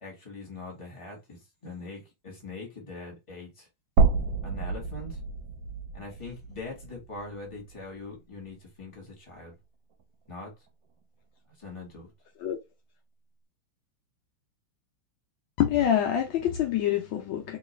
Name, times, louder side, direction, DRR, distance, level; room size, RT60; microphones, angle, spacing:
voice 1, 0.0-3.7 4.4-5.2 5.9-9.5 10.3-10.5 11.6-12.1, left 3 dB, 15° left, 1.4 m, -42 dB
sound 1, 4.0-8.1 8.5-8.6 10.0-10.1, right 4 dB, 70° right, 1.2 m, -29 dB
voice 2, 15.6-17.6, left 10 dB, 75° left, 1.3 m, -26 dB
3.2 x 3.0 x 3.1 m
omnidirectional pair, 2.4 m